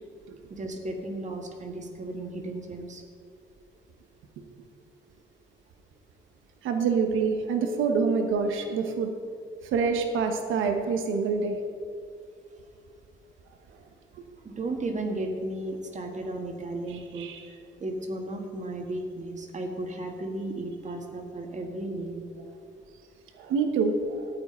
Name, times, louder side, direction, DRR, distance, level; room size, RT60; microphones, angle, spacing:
voice 1, 0.5-3.0 14.4-17.3 17.8-22.2, right 2 dB, 35° right, 4 dB, 1.7 m, -34 dB
voice 2, 6.6-9.1 9.7-11.6 16.9-17.5 23.4-24.3, right 5 dB, 85° right, 5 dB, 1.1 m, -26 dB
13.5 x 8.6 x 4.4 m, 2.2 s
cardioid pair, 90°, 20 cm